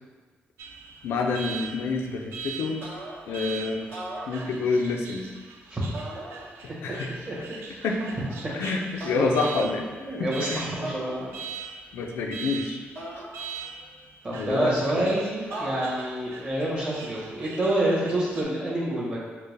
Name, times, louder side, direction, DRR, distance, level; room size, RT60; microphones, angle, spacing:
Alarm, 0.6-18.4, right 6 dB, 90° right, 0.3 m, -42 dB
voice 1, 1.0-2.8 3.3-3.9 4.3-5.3 6.6-7.5 7.8-8.1 8.5-10.7 11.9-12.8 13.2-13.3 14.3-15.1, left 3 dB, 90° left, 2 dB, 0.4 m, -28 dB
sound 1, 2.8-3.4 3.8-4.9 5.9-6.8 8.0-8.5 9.0-9.5 10.8-11.7 13.0-13.9 15.5-16.3, right 1 dB, 60° right, 1.3 m, -39 dB
voice 2, 10.0-11.3 14.2-19.2, right 1 dB, 25° right, -6 dB, 1.2 m, -27 dB
4.4 x 2.1 x 3.2 m, 1.4 s
cardioid pair, 105°, 4 cm